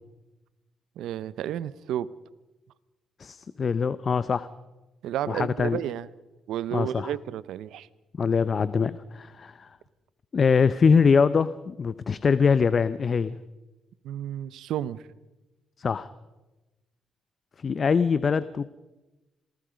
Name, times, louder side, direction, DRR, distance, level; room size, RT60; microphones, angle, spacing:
voice 1, 1.0-2.1 5.0-6.1 6.5-7.9 14.0-15.0, right 11 dB, 80° right, 17 dB, 0.8 m, -32 dB
voice 2, 3.2-4.5 5.3-5.8 6.7-7.1 8.2-9.7 10.3-13.4 15.8-16.1 17.6-18.7, left 5 dB, 40° left, 15 dB, 0.7 m, -23 dB
27.0 x 18.5 x 5.2 m, 1.1 s
cardioid pair, 90°, 0 cm